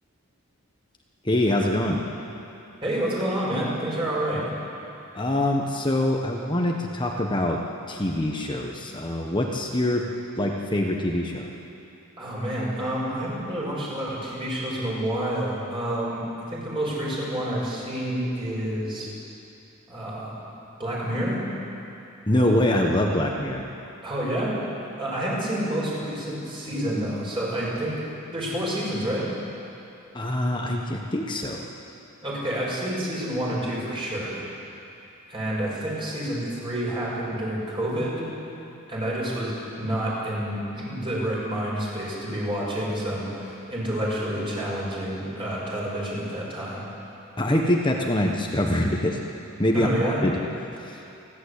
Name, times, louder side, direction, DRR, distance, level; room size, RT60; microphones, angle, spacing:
voice 1, 1.2-2.0 5.1-7.6 7.9-10.0 10.4-11.5 22.3-23.6 30.1-31.6 47.4-49.2 49.6-50.4 50.8-51.0, left 1 dB, 20° left, 0 dB, 1.2 m, -24 dB
voice 2, 2.8-4.4 12.2-16.2 16.5-19.1 19.9-20.4 20.8-21.4 24.0-24.5 25.0-28.0 28.3-29.3 32.2-34.4 35.3-38.3 38.9-46.8 49.7-50.2, right 1 dB, 25° right, -5 dB, 5.8 m, -28 dB
29.5 x 11.5 x 8.4 m, 2.8 s
head